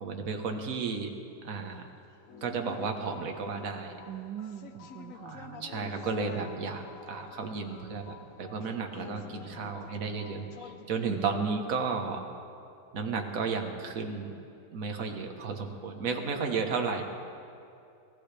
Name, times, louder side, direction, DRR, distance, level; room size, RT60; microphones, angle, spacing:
voice 1, 0.0-1.1 1.4-1.9 2.4-4.0 5.2-12.2 12.9-14.3 14.7-17.0, right 5 dB, 50° right, 4 dB, 1.6 m, -33 dB
sound 1, 2.3-11.6, left 6 dB, 55° left, 1.0 m, -48 dB
voice 2, 4.1-5.7 11.1-11.7, right 11 dB, 75° right, 7 dB, 1.2 m, -41 dB
23.0 x 17.0 x 3.4 m, 2.6 s
omnidirectional pair, 2.0 m